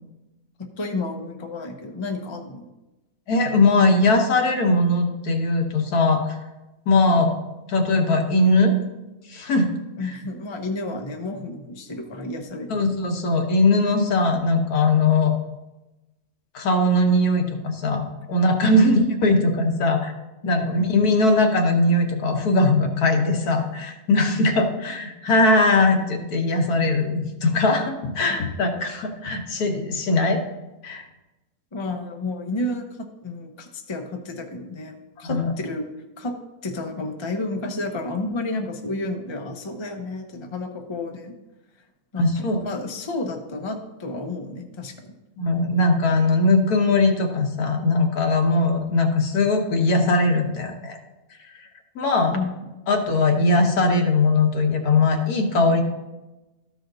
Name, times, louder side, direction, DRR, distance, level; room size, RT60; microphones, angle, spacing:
voice 1, 0.6-2.7 10.0-13.1 18.7-18.8 31.7-35.9 36.2-36.4 36.6-41.4 42.1-45.2 52.3-52.5, left 2 dB, 30° left, 4 dB, 0.5 m, -31 dB
voice 2, 3.3-6.4 6.9-7.4 7.7-8.7 9.3-9.7 12.7-15.3 16.5-18.0 18.3-20.1 20.5-30.4 30.8-31.0 35.2-35.5 42.2-42.6 45.4-51.0 51.9-52.4 52.9-55.8, left 2 dB, 75° left, 4 dB, 1.5 m, -20 dB
13.0 x 5.0 x 3.9 m, 1.0 s
omnidirectional pair, 1.6 m